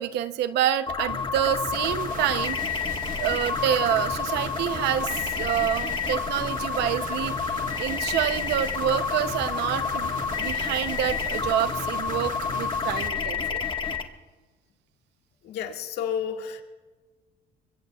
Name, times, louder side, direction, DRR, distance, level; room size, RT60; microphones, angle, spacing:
voice 1, 0.0-2.7 3.1-5.1 5.4-13.6, right 11 dB, 85° right, 12 dB, 0.8 m, -27 dB
sound 1, 0.9-14.0, left 6 dB, 30° left, 1.5 m, -29 dB
sound 2, 1.7-13.1, right 9 dB, 55° right, 0.8 m, -41 dB
Piano, 6.9-8.2, right 7 dB, 30° right, 3.5 m, -49 dB
voice 2, 15.4-16.6, left 8 dB, 75° left, 3 dB, 1.8 m, -31 dB
25.0 x 23.0 x 2.4 m, 1.3 s
cardioid pair, 110°, 17 cm